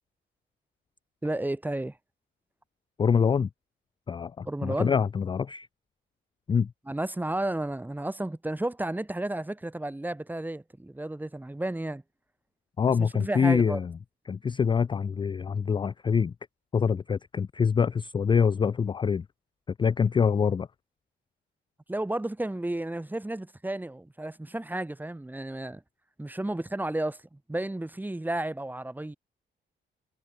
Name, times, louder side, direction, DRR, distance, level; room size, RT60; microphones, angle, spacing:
voice 1, 1.2-2.0 4.4-4.9 6.9-12.0 13.0-13.8 21.9-25.8 26.2-29.2, right 1 dB, 10° right, 1.6 m, -32 dB
voice 2, 3.0-3.5 4.1-5.7 6.5-6.7 12.8-13.9 14.3-16.3 16.7-19.3 19.8-20.7, left 6 dB, 25° left, 0.3 m, -25 dB
cardioid pair, 90°, 20 cm